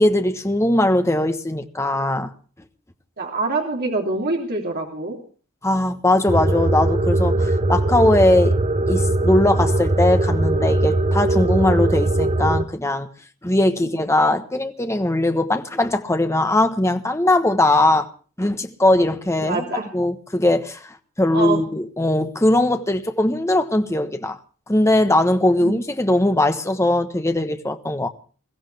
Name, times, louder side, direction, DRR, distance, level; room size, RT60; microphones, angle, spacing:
voice 1, 0.0-2.3 5.6-8.6 8.9-13.1 13.4-18.1 18.4-19.6 19.9-24.4 24.7-28.1, left 1 dB, 15° left, 1.2 m, -20 dB
voice 2, 3.2-5.2 13.8-13.9 19.4-19.9 21.3-21.6 25.5-25.7, right 3 dB, 45° right, 3.3 m, -25 dB
sound 1, 6.3-12.6, right 2 dB, 30° right, 0.7 m, -20 dB
22.0 x 15.5 x 3.4 m
head